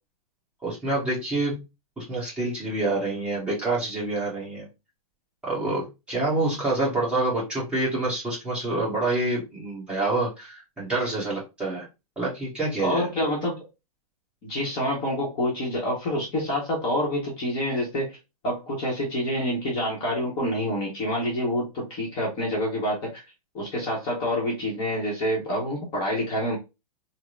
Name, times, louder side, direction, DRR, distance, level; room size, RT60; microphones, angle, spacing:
voice 1, 0.6-1.6 2.0-4.7 5.4-11.9 12.2-13.1, right 2 dB, 5° right, -8 dB, 1.4 m, -27 dB
voice 2, 12.8-13.6 14.4-18.2 18.4-23.1 23.5-26.6, equal, 25° left, -2 dB, 1.0 m, -27 dB
3.6 x 2.1 x 3.1 m, 0.25 s
hypercardioid pair, 160°, 20 cm